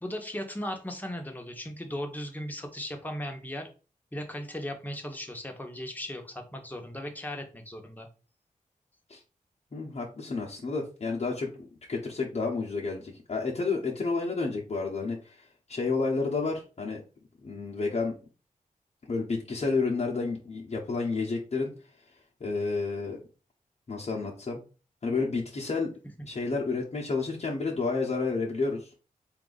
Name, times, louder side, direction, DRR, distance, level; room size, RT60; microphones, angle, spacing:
voice 1, 0.0-3.7 4.1-8.1, left 1 dB, 10° left, 3 dB, 1.0 m, -37 dB
voice 2, 9.7-17.0 17.4-18.1 19.1-21.7 22.4-23.2 23.9-24.6 25.0-25.9 26.3-28.9, left 4 dB, 50° left, -3 dB, 0.9 m, -30 dB
3.9 x 2.5 x 3.9 m, 0.34 s
wide cardioid pair, 80°, 14 cm